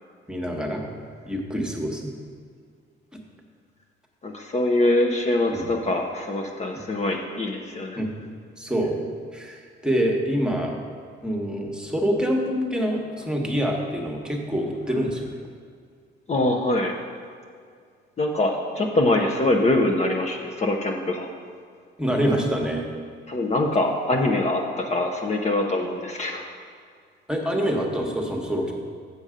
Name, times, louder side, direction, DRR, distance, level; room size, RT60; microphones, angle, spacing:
voice 1, 0.3-0.8 1.3-2.0 3.1-3.2 5.5-5.7 8.0-8.1 8.6-9.0 9.3-10.8 11.2-15.3 22.0-22.9 27.3-28.7, equal, 5° right, 1 dB, 1.3 m, -26 dB
voice 2, 4.2-8.0 16.3-16.9 18.2-21.3 23.3-26.5, left 2 dB, 35° left, 1 dB, 0.8 m, -23 dB
7.1 x 6.7 x 5.0 m, 2.1 s
cardioid pair, 90°, 20 cm